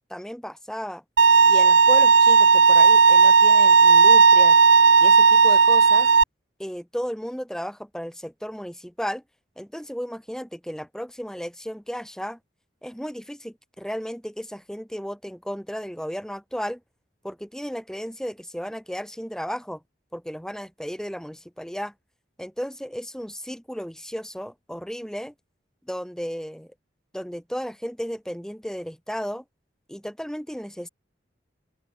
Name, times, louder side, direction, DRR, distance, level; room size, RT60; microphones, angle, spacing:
voice 1, 0.1-1.0 1.5-4.6 5.0-6.1 6.6-9.2 9.6-12.4 12.8-16.8 17.2-19.8 20.1-21.9 22.4-25.3 25.9-26.7 27.1-29.4 29.9-30.9, equal, 5° left, 3.7 m, -34 dB
Bowed string instrument, 1.2-6.2, right 5 dB, 75° right, 1.0 m, -14 dB
open air
head